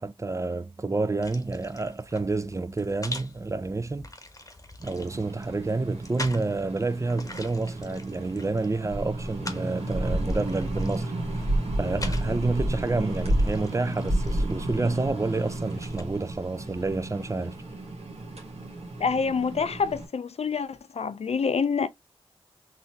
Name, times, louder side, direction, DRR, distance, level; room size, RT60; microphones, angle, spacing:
voice 1, 0.0-4.1 4.8-11.5 11.8-17.5, right 3 dB, 30° right, 0.5 m, -29 dB
sound 1, 1.2-16.0, left 2 dB, 30° left, 1.0 m, -44 dB
sound 2, 4.8-20.1, right 1 dB, 85° right, 1.5 m, -31 dB
voice 2, 19.0-21.9, left 5 dB, 80° left, 0.5 m, -27 dB
4.0 x 2.7 x 2.7 m
cardioid pair, 45°, 11 cm